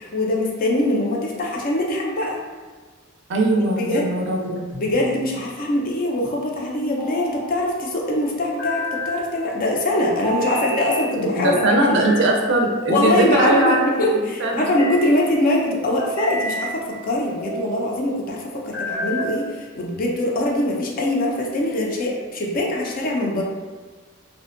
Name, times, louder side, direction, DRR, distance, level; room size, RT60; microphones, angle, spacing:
voice 1, 0.0-2.4 3.8-4.1 4.8-12.0 12.9-23.4, left 1 dB, 45° left, -1 dB, 0.4 m, -23 dB
voice 2, 3.3-4.7 11.2-14.6, right 2 dB, 60° right, 0 dB, 0.4 m, -20 dB
sound 1, 4.7-5.4 6.8-7.5 8.4-9.2 10.2-11.0 11.6-12.3 12.9-13.8 14.4-15.0 15.8-16.7 17.3-17.8 18.5-19.4, left 1 dB, 85° left, 1.0 m, -30 dB
2.5 x 2.1 x 2.4 m, 1.4 s
head